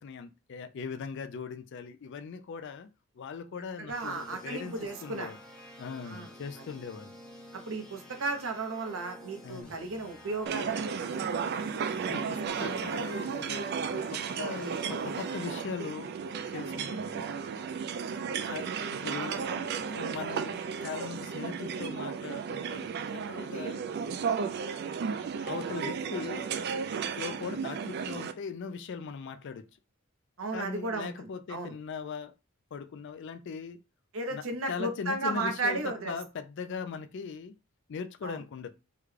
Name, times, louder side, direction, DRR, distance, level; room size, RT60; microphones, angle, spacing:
voice 1, 0.0-2.9 3.2-4.7 5.0-5.4 5.8-7.1 9.4-9.7 12.1-16.1 16.5-17.3 18.4-19.5 19.9-23.8 25.4-26.5 27.2-29.7 30.5-32.3 32.7-33.8 34.3-37.5 37.9-38.7, left 5 dB, 55° left, 0.4 m, -40 dB
voice 2, 3.8-5.3 6.0-6.3 7.5-11.1 18.0-18.1 19.1-19.9 20.3-20.5 30.4-31.7 34.1-36.1 38.2-38.4, right 2 dB, 65° right, 0.7 m, -35 dB
sound 1, 3.9-15.3, equal, 5° left, 0.7 m, -50 dB
sound 2, 10.5-28.3, right 6 dB, 50° right, 0.3 m, -34 dB
3.6 x 2.2 x 3.2 m
head